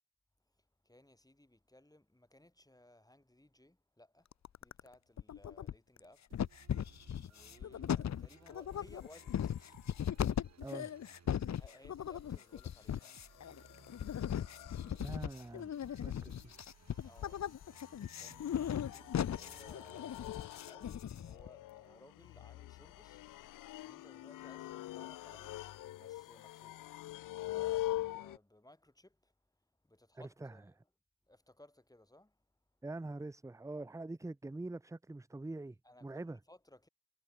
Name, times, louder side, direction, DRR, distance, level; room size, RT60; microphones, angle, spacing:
voice 1, 0.6-4.3 4.6-6.4 7.2-9.8 11.5-13.4 17.0-17.5 18.2-29.3 29.8-30.8 31.3-32.5 35.8-36.9, left 1 dB, 10° left, 5.4 m, -62 dB
sound 1, 4.3-4.9 5.2-6.0 6.3-21.5, left 9 dB, 60° left, 1.0 m, -38 dB
sound 2, 6.3-20.6, right 6 dB, 55° right, 3.5 m, -63 dB
sound 3, 9.0-10.1 12.2-28.4, left 15 dB, 90° left, 1.2 m, -45 dB
voice 2, 10.6-10.9 14.8-15.7 16.0-16.7 30.1-30.5 32.8-35.8 36.0-36.4, right 2 dB, 10° right, 0.7 m, -44 dB
supercardioid pair, 50°, 31 cm